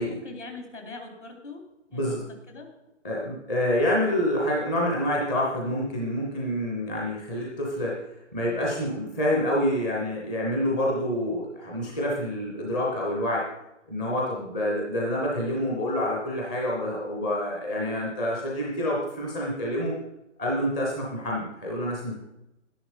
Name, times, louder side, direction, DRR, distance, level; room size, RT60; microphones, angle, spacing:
voice 1, 0.1-1.6 1.9-2.7, left 3 dB, 70° left, 2 dB, 3.8 m, -42 dB
voice 2, 1.9-2.2 3.0-8.0 8.3-13.5 13.9-19.9 20.4-22.2, left 1 dB, 5° left, -4 dB, 0.6 m, -27 dB
11.0 x 10.0 x 5.2 m, 0.91 s
figure-of-eight pair, 140°, 37 cm